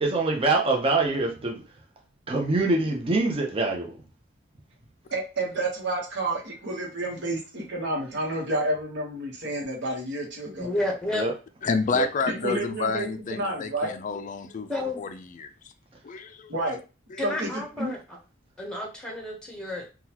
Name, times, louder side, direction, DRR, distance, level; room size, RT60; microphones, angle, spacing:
voice 1, 0.0-1.6 2.3-3.9 11.1-11.3 11.9-12.1, right 3 dB, 30° right, 0.7 m, -24 dB
voice 2, 5.1-10.7 12.3-13.9 16.5-16.8 17.2-17.9, right 1 dB, 60° right, 1.2 m, -30 dB
voice 3, 10.6-11.2 14.7-15.0 17.2-18.0 18.6-19.9, left 1 dB, 5° left, 0.9 m, -31 dB
voice 4, 11.6-14.7 15.0-15.5 16.0-16.5, left 5 dB, 40° left, 0.4 m, -29 dB
3.8 x 2.3 x 2.9 m
head